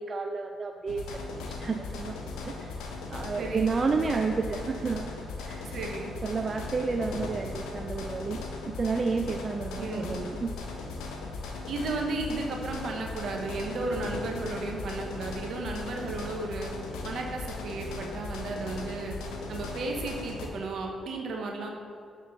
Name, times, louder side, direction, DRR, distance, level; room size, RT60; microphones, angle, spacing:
voice 1, 0.0-2.1 2.4-5.1 5.4-5.7 6.2-8.4 8.8-10.5, right 4 dB, 45° right, 5 dB, 0.3 m, -31 dB
sound 1, 0.9-20.5, left 3 dB, 85° left, 0.8 m, -38 dB
voice 2, 3.4-3.7 5.7-6.1 9.8-10.2 11.7-16.7 17.0-19.2 19.5-21.7, right 3 dB, 70° right, 2 dB, 1.0 m, -34 dB
6.8 x 4.3 x 5.5 m, 2.3 s
supercardioid pair, 60°, 0 cm